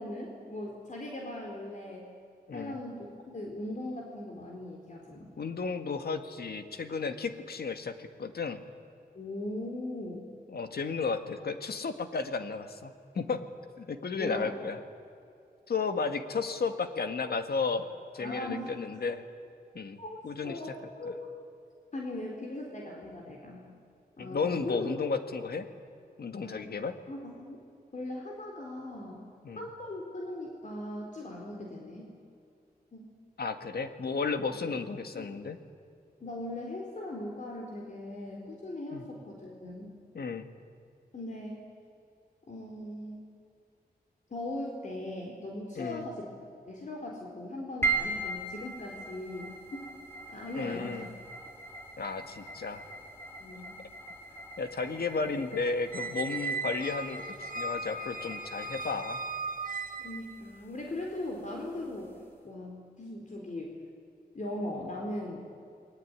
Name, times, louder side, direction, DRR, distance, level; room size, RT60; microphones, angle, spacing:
voice 1, 0.0-2.1 2.5-5.3 9.1-10.3 14.2-14.6 18.2-18.8 20.0-20.2 20.4-21.3 21.9-23.7 24.2-24.9 26.4-26.7 27.1-27.6 27.9-29.2 29.6-32.1 32.9-33.1 34.6-34.7 35.1-35.3 36.2-39.9 41.1-41.6 42.5-43.3 44.3-46.3 46.7-49.9 50.3-51.1 53.4-53.8 60.0-62.1 62.4-63.8 64.3-65.5, left 1 dB, 50° left, -1 dB, 4.0 m, -39 dB
voice 2, 5.4-8.6 10.5-13.5 13.8-14.8 15.7-17.9 18.1-19.2 19.7-20.0 20.2-20.6 24.2-25.7 26.2-27.0 29.4-29.6 33.4-35.6 38.9-39.0 40.1-40.5 45.8-46.1 50.6-51.1 52.0-52.8 54.6-59.2, left 4 dB, 75° left, 8 dB, 1.9 m, -33 dB
sound 1, 47.8-62.3, right 3 dB, 15° left, 4.2 m, -40 dB
Squeak, 55.9-60.4, right 3 dB, 60° right, 1.4 m, -37 dB
29.0 x 21.0 x 9.7 m, 2.5 s
wide cardioid pair, 105°, 16 cm